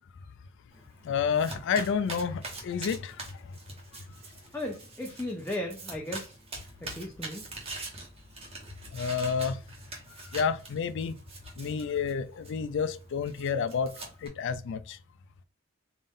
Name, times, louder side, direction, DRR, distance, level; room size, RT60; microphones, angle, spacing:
Domestic sounds home sounds, 0.7-14.3, right 2 dB, 30° right, 1.1 m, -44 dB
voice 1, 1.0-3.2 8.9-9.6 10.3-11.2 11.6-13.9 14.2-15.0, left 6 dB, 60° left, 0.4 m, -30 dB
voice 2, 4.5-6.3 6.8-7.4, left 1 dB, 10° left, 0.5 m, -36 dB
3.6 x 2.5 x 3.6 m
head